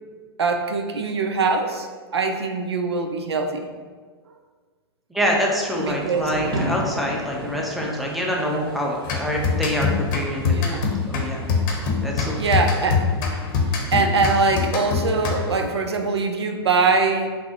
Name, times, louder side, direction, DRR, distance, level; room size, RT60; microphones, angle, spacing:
voice 1, 0.4-1.9 2.1-3.6 5.8-6.3 10.4-10.8 12.3-13.0 13.9-17.3, right 4 dB, 85° right, 5 dB, 0.4 m, -22 dB
voice 2, 5.1-11.4 12.0-12.4, equal, ahead, -2 dB, 0.6 m, -26 dB
Thunder / Rain, 5.5-14.5, right 1 dB, 65° right, 0.9 m, -36 dB
sound 1, 9.0-15.7, left 5 dB, 50° left, 0.7 m, -24 dB
5.9 x 2.0 x 2.8 m, 1.5 s
hypercardioid pair, 105°, 13 cm